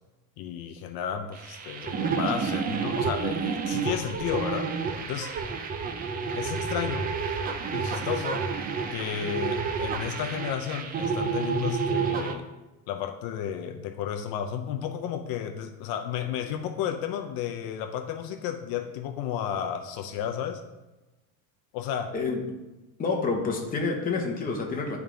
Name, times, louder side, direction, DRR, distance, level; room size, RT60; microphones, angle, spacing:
voice 1, 0.4-4.7 5.0-5.3 6.3-7.1 7.7-8.5 8.9-12.5 12.9-20.6 21.7-22.1, left 9 dB, 70° left, 7 dB, 0.6 m, -32 dB
sound 1, 1.3-12.4, right 5 dB, 25° right, 0.4 m, -30 dB
voice 2, 22.1-22.4 23.0-25.0, left 4 dB, 20° left, 1 dB, 0.9 m, -28 dB
10.5 x 3.5 x 3.7 m, 1.1 s
cardioid pair, 160°, 38 cm